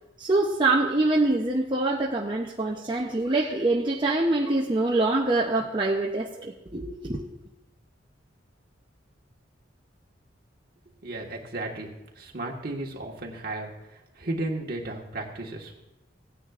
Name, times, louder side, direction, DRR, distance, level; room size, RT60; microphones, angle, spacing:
voice 1, 0.2-7.3, right 2 dB, 25° right, -2 dB, 0.7 m, -25 dB
voice 2, 11.0-13.7 14.2-15.7, right 2 dB, 50° right, -1 dB, 1.6 m, -34 dB
17.0 x 9.8 x 2.5 m, 0.92 s
head